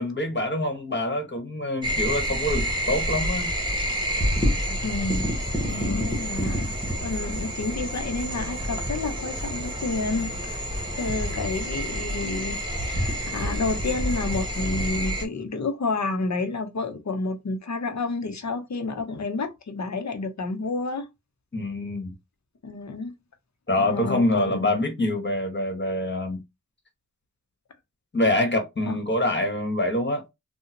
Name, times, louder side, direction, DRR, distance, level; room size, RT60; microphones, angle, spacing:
voice 1, 0.0-3.5 5.7-6.1 21.5-22.1 23.7-26.4 28.1-30.2, left 1 dB, 35° left, 1.6 m, -26 dB
sound 1, 1.8-15.2, equal, 15° right, 1.5 m, -28 dB
voice 2, 4.7-5.3 5.9-6.7 7.0-10.6 11.0-21.1 22.6-23.2 23.8-24.7 28.9-29.0, left 3 dB, 65° left, 1.0 m, -30 dB
3.7 x 2.4 x 2.9 m
cardioid pair, 45°, 30 cm